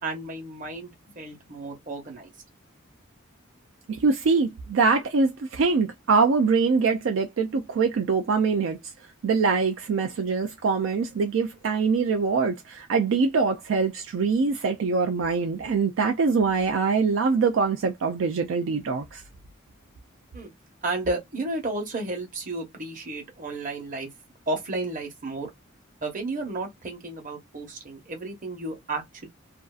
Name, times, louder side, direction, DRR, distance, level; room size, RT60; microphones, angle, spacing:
voice 1, 0.0-2.3 20.3-20.5 20.8-24.1 24.5-25.5 26.0-29.3, right 2 dB, 40° right, 0.9 m, -32 dB
voice 2, 3.9-8.9 9.2-19.2, right 4 dB, 65° right, 0.4 m, -23 dB
2.5 x 2.4 x 2.3 m
head